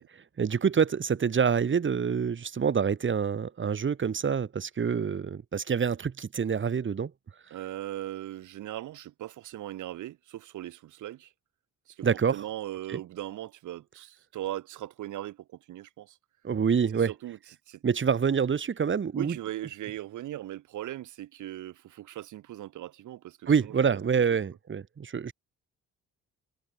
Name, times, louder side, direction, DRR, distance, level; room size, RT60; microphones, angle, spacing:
voice 1, 0.0-7.1 12.0-12.4 12.9-13.0 16.4-17.1 17.8-19.4 23.5-25.3, right 6 dB, 40° right, 2.4 m, -26 dB
voice 2, 7.5-11.3 11.9-12.1 12.3-16.2 16.9-17.4 17.7-17.8 19.1-23.7, right 13 dB, 75° right, 2.0 m, -39 dB
cardioid pair, 90°, 30 cm